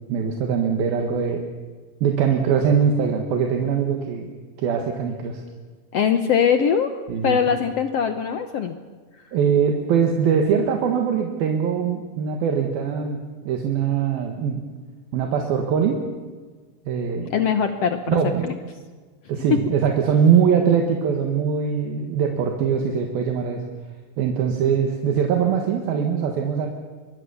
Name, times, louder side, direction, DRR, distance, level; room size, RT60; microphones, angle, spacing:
voice 1, 0.1-1.4 2.0-4.3 4.6-5.4 7.1-7.4 9.3-13.2 13.4-14.6 15.1-16.0 16.9-17.3 18.1-18.5 19.3-23.6 24.2-26.7, right 7 dB, 80° right, 3 dB, 3.4 m, -22 dB
voice 2, 5.9-6.9 7.2-8.7 17.3-18.2 18.4-18.5 19.5-19.6, left 7 dB, 80° left, 8 dB, 1.4 m, -21 dB
25.0 x 20.5 x 7.0 m, 1.4 s
omnidirectional pair, 4.3 m